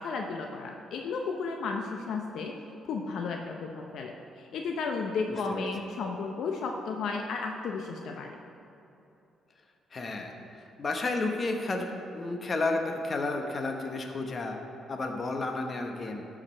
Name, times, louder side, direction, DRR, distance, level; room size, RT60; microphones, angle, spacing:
voice 1, 0.0-2.5 2.8-8.4, left 4 dB, 70° left, 2 dB, 0.6 m, -33 dB
voice 2, 9.9-14.6 14.9-16.3, left 2 dB, 40° left, 3 dB, 1.0 m, -32 dB
12.0 x 4.9 x 4.4 m, 2.8 s
cardioid pair, 90°, 0 cm